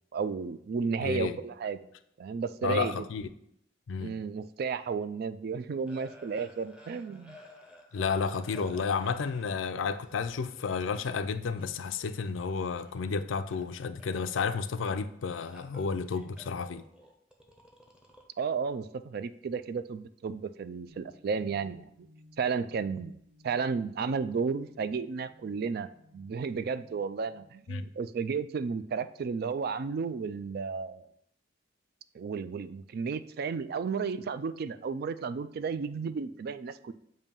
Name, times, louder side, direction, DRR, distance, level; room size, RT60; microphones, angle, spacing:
voice 1, 0.1-1.8 2.2-3.0 4.0-7.4 18.4-22.1 22.4-23.1 23.4-31.1 32.1-36.9, right 5 dB, 55° right, 0.3 m, -33 dB
voice 2, 1.0-1.4 2.6-3.3 3.9-4.2 7.9-16.8 27.7-27.9, left 5 dB, 80° left, 0.4 m, -32 dB
sound 1, 5.9-9.6 9.9-11.2 11.6-13.1 13.4-13.7 14.0-15.0 15.3-18.2, left 1 dB, 5° right, 0.7 m, -54 dB
sound 2, 20.9-27.5, left 1 dB, 35° right, 1.5 m, -59 dB
7.0 x 2.7 x 5.3 m
head